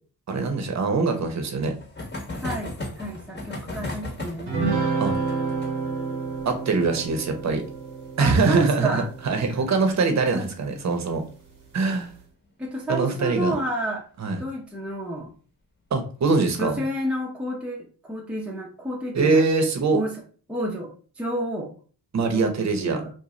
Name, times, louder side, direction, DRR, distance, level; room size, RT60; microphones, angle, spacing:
voice 1, 0.3-1.7 5.0-5.2 6.4-7.6 8.2-11.2 11.7-12.1 12.9-13.5 14.2-14.4 15.9-16.8 19.1-20.0 22.1-23.0, right 4 dB, 45° right, 5 dB, 0.8 m, -23 dB
sound 1, 0.9-10.1 10.4-10.5 10.7-10.8 11.1-11.2 12.6-12.9 13.5-14.0, left 2 dB, 25° left, 1.0 m, -38 dB
voice 2, 2.4-4.7 8.2-9.1 10.3-10.5 12.6-14.1 14.4-15.3 16.6-19.5 19.9-20.2 20.5-21.8 22.3-23.1, right 1 dB, 5° right, -1 dB, 0.6 m, -30 dB
sound 2, 4.5-10.1, right 4 dB, 90° right, 1.0 m, -30 dB
2.5 x 2.3 x 3.0 m, 0.40 s
supercardioid pair, 55°, 39 cm